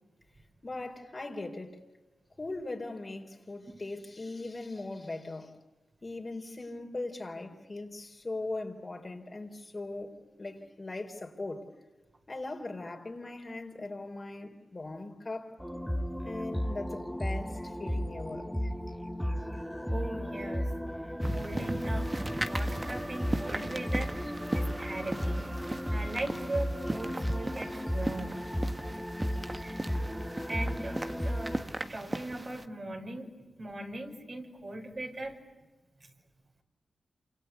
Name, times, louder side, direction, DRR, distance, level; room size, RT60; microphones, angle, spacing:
voice 1, 0.6-1.8 2.4-5.5 6.0-10.1 10.4-11.7 12.3-15.6 16.2-18.7, left 2 dB, 40° left, 4.0 m, -39 dB
sound 1, 15.6-31.6, equal, ahead, 2.5 m, -34 dB
voice 2, 19.9-20.7 21.3-22.1 22.5-24.3 24.5-25.5 25.9-28.5 29.6-29.8 30.5-31.6 31.9-33.3 33.6-35.4, right 2 dB, 45° right, 5.6 m, -39 dB
sound 2, 21.2-32.7, right 1 dB, 25° right, 1.6 m, -38 dB
27.5 x 26.0 x 8.3 m
cardioid pair, 45°, 0 cm